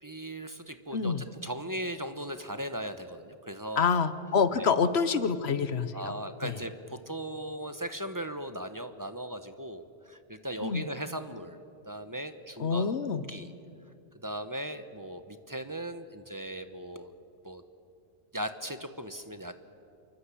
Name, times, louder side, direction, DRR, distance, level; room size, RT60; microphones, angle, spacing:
voice 1, 0.0-3.9 4.5-4.7 5.9-11.6 11.8-13.5 14.2-17.1 17.4-17.6 18.3-19.5, right 1 dB, 20° right, 9 dB, 1.2 m, -38 dB
voice 2, 0.9-1.2 3.8-6.1 6.4-6.6 10.6-10.8 12.6-13.3, left 5 dB, 90° left, 13 dB, 1.3 m, -27 dB
28.0 x 24.0 x 8.6 m, 2.5 s
omnidirectional pair, 1.0 m